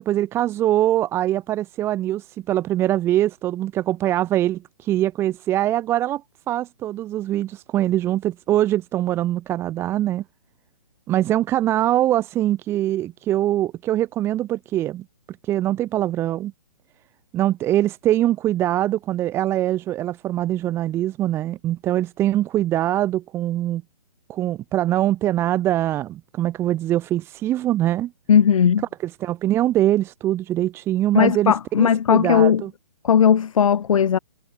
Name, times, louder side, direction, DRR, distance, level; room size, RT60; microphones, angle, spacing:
voice 1, 0.0-6.2 6.5-10.2 11.1-15.0 15.4-16.5 17.3-23.8 24.3-28.1 29.0-32.7, right 13 dB, 10° right, 1.9 m, -23 dB
voice 2, 28.3-28.8 31.1-32.6 33.0-34.2, left 8 dB, 55° left, 1.6 m, -17 dB
hypercardioid pair, 165°, 21 cm